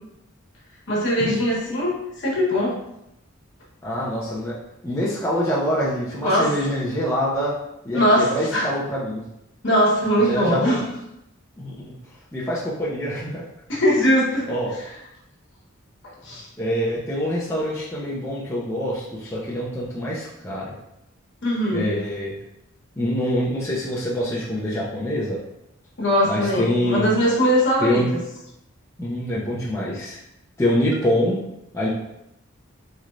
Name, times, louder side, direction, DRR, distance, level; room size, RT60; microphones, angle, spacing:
voice 1, 0.9-2.8 6.2-6.5 7.9-8.7 9.6-10.8 13.7-14.9 16.0-16.5 21.4-21.9 26.0-28.2, equal, 55° left, -4 dB, 1.2 m, -21 dB
voice 2, 3.8-4.6 4.8-7.6 7.8-9.2 10.3-10.7 11.6-11.9 12.3-13.4 14.5-14.7 16.6-20.7 21.7-22.3 23.0-25.4 26.3-27.1 27.8-28.1 29.0-30.2 30.6-31.4 31.7-31.9, equal, 15° left, -8 dB, 0.6 m, -25 dB
4.2 x 3.2 x 2.5 m, 0.83 s
head